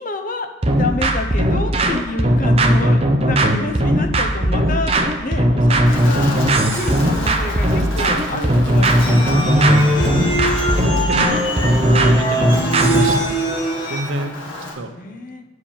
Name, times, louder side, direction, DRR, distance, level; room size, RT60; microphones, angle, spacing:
voice 1, 0.0-10.3 14.2-15.4, left 2 dB, 45° left, 5 dB, 0.7 m, -29 dB
sound 1, 0.6-13.3, right 1 dB, 30° right, 0.7 m, -17 dB
Wind, 5.9-14.7, left 2 dB, 75° left, 1.8 m, -32 dB
sound 2, 9.0-14.0, equal, 25° left, 1.2 m, -21 dB
voice 2, 10.3-13.4 13.9-14.4 14.7-15.0, right 1 dB, 85° right, 8 dB, 0.8 m, -29 dB
8.5 x 4.7 x 7.3 m, 1.2 s
head